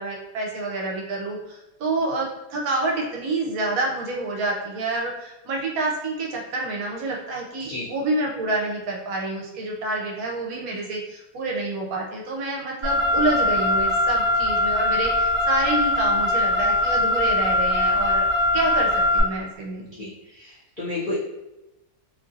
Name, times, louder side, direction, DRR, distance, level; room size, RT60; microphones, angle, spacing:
voice 1, 0.0-18.3 18.5-20.1, right 2 dB, 75° right, -1 dB, 1.0 m, -28 dB
Car, 12.8-19.2, left 1 dB, 40° right, 0.9 m, -21 dB
voice 2, 19.8-21.2, left 2 dB, 60° left, -9 dB, 0.5 m, -32 dB
2.9 x 2.6 x 2.4 m, 0.95 s
omnidirectional pair, 1.6 m